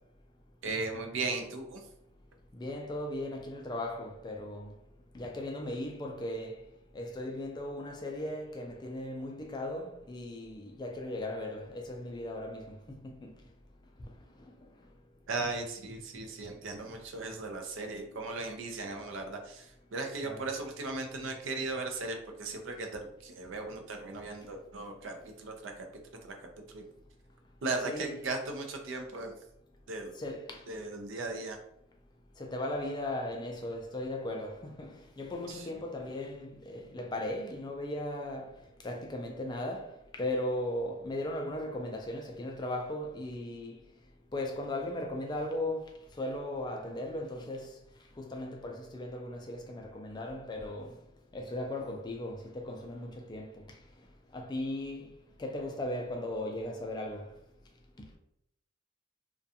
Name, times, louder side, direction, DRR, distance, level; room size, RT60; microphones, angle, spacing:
voice 1, 0.6-1.9 15.3-25.9 26.2-26.3 26.7-26.8 27.6-29.3 29.9-30.1 30.7-31.6 35.5-35.6, right 3 dB, 75° right, 0.5 m, -37 dB
voice 2, 2.5-4.7 5.1-6.6 6.9-12.7 13.0-13.2 20.2-20.5 27.8-28.2 30.2-30.6 32.4-38.5 38.8-43.7 44.3-45.8 46.2-47.7 48.2-50.9 51.3-53.5 54.3-55.1 55.4-57.3, left 1 dB, 20° left, 0.3 m, -37 dB
2.4 x 2.2 x 2.7 m
head